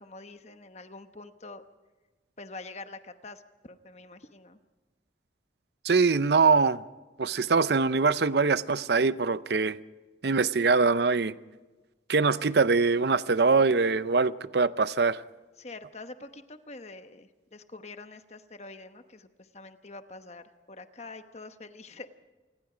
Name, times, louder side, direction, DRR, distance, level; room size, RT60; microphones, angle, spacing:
voice 1, 0.0-1.6 2.4-4.6 15.6-22.1, left 3 dB, 35° left, 1.0 m, -45 dB
voice 2, 5.8-6.8 7.2-9.8 10.2-11.3 12.1-15.2, right 4 dB, 65° right, 0.6 m, -23 dB
27.5 x 20.0 x 5.0 m
head